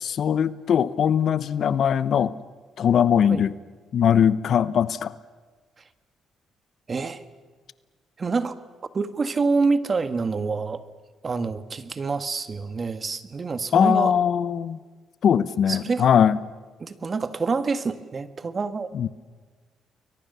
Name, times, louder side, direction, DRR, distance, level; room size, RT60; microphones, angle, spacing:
voice 1, 0.0-2.3 2.8-3.6 3.9-5.1 13.7-14.8 15.2-16.4 18.9-19.1, left 8 dB, 60° left, 16 dB, 0.9 m, -20 dB
voice 2, 6.9-7.2 8.2-8.5 8.9-10.8 11.2-14.1 15.7-16.1 16.8-18.9, right 4 dB, 35° right, 12 dB, 1.6 m, -26 dB
30.0 x 22.0 x 7.0 m, 1.5 s
cardioid pair, 90°, 0 cm